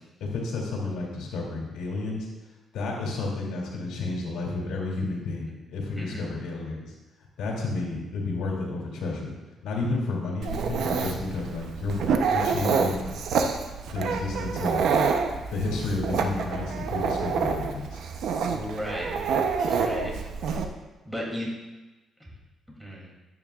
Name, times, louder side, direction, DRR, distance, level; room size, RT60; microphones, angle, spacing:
voice 1, 0.2-2.3 2.7-6.9 7.4-9.3 9.6-12.0 12.3-13.2 13.9-14.8 15.5-18.0, left 3 dB, 85° left, -3 dB, 2.8 m, -31 dB
voice 2, 5.9-6.3 18.5-19.2 19.6-20.2 21.0-21.5 22.8-23.1, equal, 5° right, -4 dB, 2.8 m, -34 dB
Dog, 10.4-20.7, right 5 dB, 75° right, 0.8 m, -27 dB
11.0 x 9.2 x 2.4 m, 1.1 s
cardioid pair, 90°, 0 cm